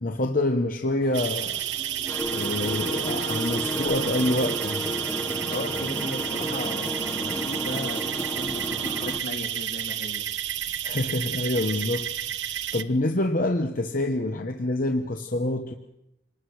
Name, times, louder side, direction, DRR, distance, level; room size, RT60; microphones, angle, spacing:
voice 1, 0.0-1.6 2.3-4.9 10.8-12.1 12.4-15.7, left 1 dB, 50° left, 5 dB, 1.2 m, -26 dB
sound 1, 1.0-9.1, right 2 dB, 35° right, 6.7 m, -45 dB
sound 2, 1.1-12.8, right 11 dB, 85° right, 1.0 m, -31 dB
sound 3, 2.1-9.2, left 1 dB, 10° left, 1.4 m, -32 dB
voice 2, 5.5-10.2, left 1 dB, 80° left, 0 dB, 2.7 m, -36 dB
26.0 x 20.0 x 6.4 m, 0.84 s
head